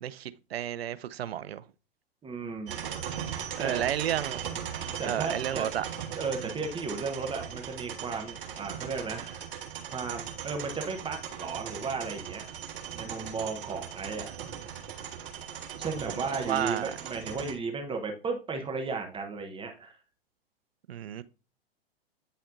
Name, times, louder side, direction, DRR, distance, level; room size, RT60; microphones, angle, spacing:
voice 1, 0.0-1.6 3.6-4.4 5.0-5.8 6.4-6.6 16.4-17.0 20.9-21.2, right 11 dB, 80° right, 0.5 m, -32 dB
voice 2, 2.2-2.7 3.6-3.8 5.0-5.7 6.1-9.4 9.9-12.5 12.9-14.3 15.8-20.0, right 4 dB, 15° right, 0.9 m, -35 dB
sound 1, 2.7-17.5, right 8 dB, 65° right, 1.3 m, -39 dB
9.0 x 4.2 x 2.6 m
hypercardioid pair, 105°, 30 cm